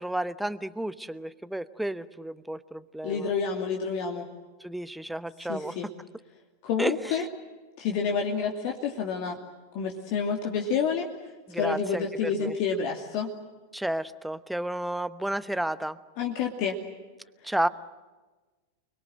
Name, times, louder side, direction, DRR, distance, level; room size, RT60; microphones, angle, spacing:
voice 1, 0.0-3.3 4.6-5.7 6.8-7.2 11.5-12.5 13.7-16.0 17.4-17.7, right 1 dB, 5° right, 15 dB, 1.0 m, -32 dB
voice 2, 3.0-4.3 5.5-5.9 6.6-7.3 7.8-9.4 9.7-11.1 11.5-13.3 16.2-16.8 17.4-17.5, left 6 dB, 45° left, 1 dB, 2.7 m, -29 dB
30.0 x 22.0 x 7.8 m, 1.2 s
figure-of-eight pair, 90°, 0 cm